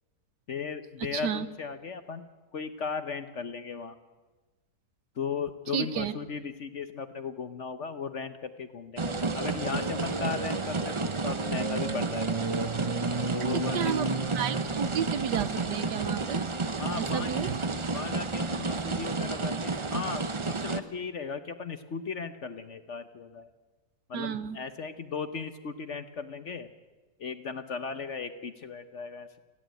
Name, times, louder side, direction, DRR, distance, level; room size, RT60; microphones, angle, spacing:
voice 1, 0.5-2.2 2.5-3.9 5.2-12.7 13.3-14.2 16.8-17.4 17.9-23.5 24.1-26.7 27.2-29.3, left 5 dB, 50° left, 9 dB, 1.0 m, -36 dB
voice 2, 1.1-1.5 5.7-6.2 13.4-14.1 14.3-16.4 17.0-17.6 24.1-24.6, right 8 dB, 75° right, 13 dB, 1.5 m, -32 dB
sound 1, 9.0-20.8, right 3 dB, 40° right, 0.4 m, -30 dB
29.0 x 11.5 x 9.1 m, 1.3 s
omnidirectional pair, 1.9 m